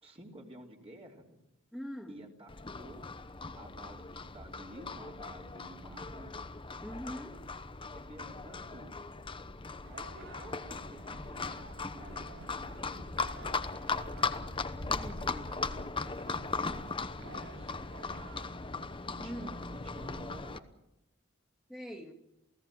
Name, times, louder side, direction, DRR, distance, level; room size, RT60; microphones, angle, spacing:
voice 1, 0.0-1.4 2.1-2.5 2.8-3.0 3.6-6.3 7.9-8.9 9.9-14.1 14.7-17.7 19.1-19.6 19.9-20.7, right 1 dB, 30° right, 3.3 m, -52 dB
voice 2, 1.7-2.2 6.8-7.4 14.9-15.2 19.2-19.5 21.7-22.1, equal, ahead, 2.3 m, -42 dB
Livestock farm animals working animals, 2.5-20.6, left 4 dB, 25° left, 0.9 m, -38 dB
sound 1, 9.8-20.2, right 4 dB, 60° right, 0.8 m, -54 dB
28.5 x 17.5 x 7.5 m
head